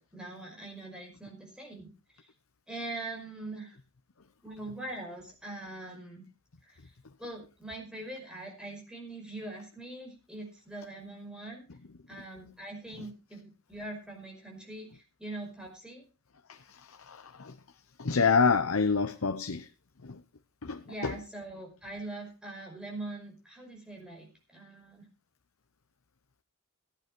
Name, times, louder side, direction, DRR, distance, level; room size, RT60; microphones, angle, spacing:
voice 1, 0.0-1.9 2.7-3.8 4.4-6.2 6.6-6.8 7.2-11.6 12.1-16.1 20.9-25.1, right 2 dB, 5° right, 5.3 m, -42 dB
voice 2, 16.5-17.5 18.0-19.7 20.0-20.2 20.6-21.2, left 5 dB, 80° left, 0.9 m, -28 dB
15.5 x 10.5 x 4.5 m
head